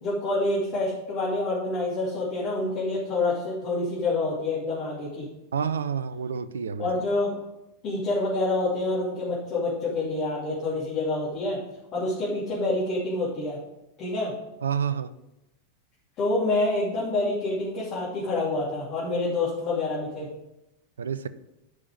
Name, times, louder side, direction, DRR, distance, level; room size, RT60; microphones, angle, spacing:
voice 1, 0.0-5.3 6.8-7.3 7.8-11.6 11.9-13.6 14.0-14.3 16.2-20.3, left 2 dB, 35° left, -7 dB, 2.7 m, -27 dB
voice 2, 5.5-6.9 14.6-15.1 21.0-21.3, right 7 dB, 70° right, 15 dB, 0.5 m, -28 dB
10.5 x 5.5 x 4.9 m, 0.92 s
figure-of-eight pair, 90°, 0 cm